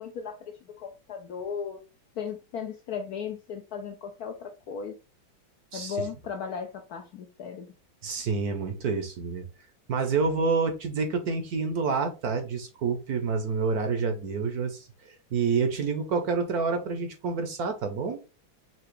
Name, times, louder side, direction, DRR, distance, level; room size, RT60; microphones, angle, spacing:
voice 1, 0.0-1.8 2.2-4.9 5.7-7.7, left 6 dB, 70° left, 0.9 m, -36 dB
voice 2, 8.0-9.5 9.9-18.3, right 5 dB, 60° right, 1.1 m, -28 dB
5.8 x 2.8 x 3.1 m
omnidirectional pair, 2.1 m